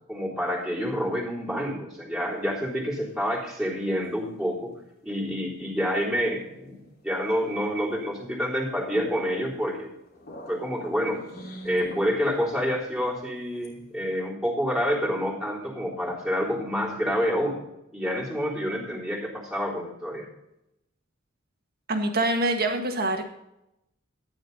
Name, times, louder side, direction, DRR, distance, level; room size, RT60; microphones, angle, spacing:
voice 1, 0.1-4.7 5.0-9.9 10.5-11.2 11.6-17.6 17.9-20.3, equal, ahead, -6 dB, 3.6 m, -28 dB
sound 1, 2.4-3.2 4.0-4.1 6.0-7.0 7.3-7.5 8.0-8.3 8.5-14.2, equal, 50° left, 3.1 m, -44 dB
voice 2, 21.9-23.3, right 2 dB, 50° right, 4 dB, 1.9 m, -25 dB
13.5 x 10.5 x 4.0 m, 0.85 s
head